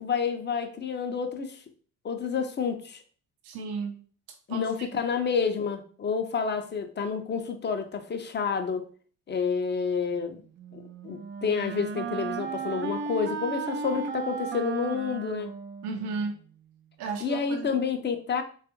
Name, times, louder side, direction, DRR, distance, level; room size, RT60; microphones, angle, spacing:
voice 1, 0.0-1.6 2.0-3.0 4.5-8.9 9.3-10.4 10.7-15.5 17.2-18.4, left 6 dB, 25° left, 7 dB, 0.5 m, -29 dB
voice 2, 3.4-4.0 4.5-4.9 15.8-16.4 17.0-17.8, right 4 dB, 65° right, 5 dB, 0.7 m, -34 dB
Wind instrument woodwind instrument, 10.6-16.4, right 5 dB, 30° right, 0.4 m, -35 dB
3.3 x 2.3 x 2.9 m, 0.42 s
hypercardioid pair, 45°, 43 cm